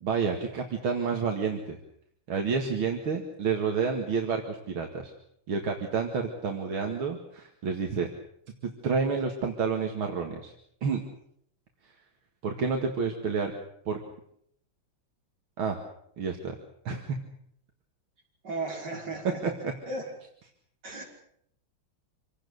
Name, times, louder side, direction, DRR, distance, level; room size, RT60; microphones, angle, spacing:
voice 1, 0.0-1.8 2.3-5.1 5.5-8.1 8.6-10.5 10.8-11.0 12.4-13.5 13.9-14.0 15.6-15.8 16.2-16.5 16.8-17.2 19.6-19.7, right 5 dB, 75° right, 3 dB, 2.9 m, -29 dB
voice 2, 18.4-19.4 19.9-20.1 20.8-21.0, right 2 dB, 55° right, -1 dB, 6.4 m, -35 dB
26.5 x 18.0 x 8.2 m, 0.69 s
omnidirectional pair, 2.3 m